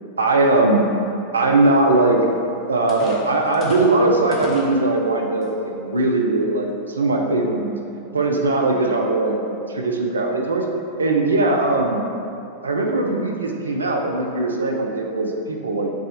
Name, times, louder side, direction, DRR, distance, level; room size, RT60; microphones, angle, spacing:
voice 1, 0.2-0.9 1.3-2.2 2.7-7.8 8.1-10.7 11.0-12.1 12.6-15.9, right 2 dB, 75° right, 2 dB, 0.4 m, -20 dB
sound 1, 2.3-2.4 2.9-4.7 5.4-5.5 6.0-6.2, left 1 dB, 25° left, 0.7 m, -33 dB
4.7 x 2.4 x 4.0 m, 2.7 s
figure-of-eight pair, 90°, 0 cm